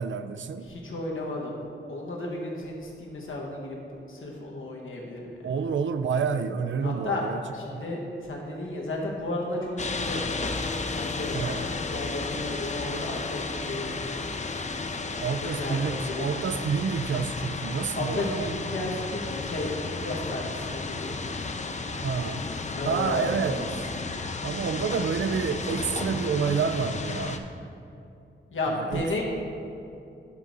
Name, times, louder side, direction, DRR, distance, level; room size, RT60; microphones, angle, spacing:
voice 1, 0.0-0.7 5.4-7.4 7.7-7.8 11.3-11.8 15.2-18.5 22.0-22.5 22.8-23.8 24.4-27.5 28.7-29.2, right 6 dB, 75° right, 0.4 m, -29 dB
voice 2, 0.6-1.6 1.9-5.2 5.5-5.6 6.8-7.2 7.5-11.5 11.9-14.4 15.4-16.3 18.0-21.4 22.8-23.2 24.8-25.1 28.5-29.2, left 2 dB, 90° left, 1.1 m, -33 dB
sound 1, 9.8-27.4, left 3 dB, 35° left, 0.5 m, -33 dB
10.0 x 3.9 x 4.8 m
wide cardioid pair, 95°, 20 cm